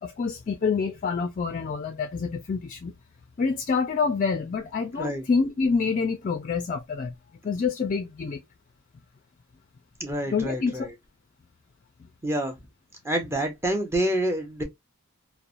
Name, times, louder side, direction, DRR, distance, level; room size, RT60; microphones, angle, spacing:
voice 1, 0.0-2.9 3.4-7.1 7.4-8.4 10.3-10.8, left 5 dB, 35° left, 0.3 m, -27 dB
voice 2, 10.0-10.9 12.2-12.5 13.0-14.6, right 1 dB, 10° right, 0.5 m, -27 dB
3.0 x 2.0 x 2.4 m
head